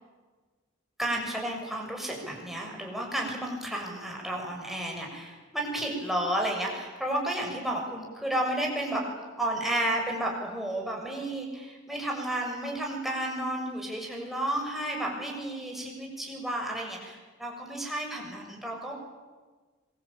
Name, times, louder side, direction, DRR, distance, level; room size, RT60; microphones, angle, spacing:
voice 1, 1.0-9.1 9.4-18.9, right 1 dB, ahead, -1 dB, 6.9 m, -32 dB
26.0 x 23.0 x 8.9 m, 1.3 s
head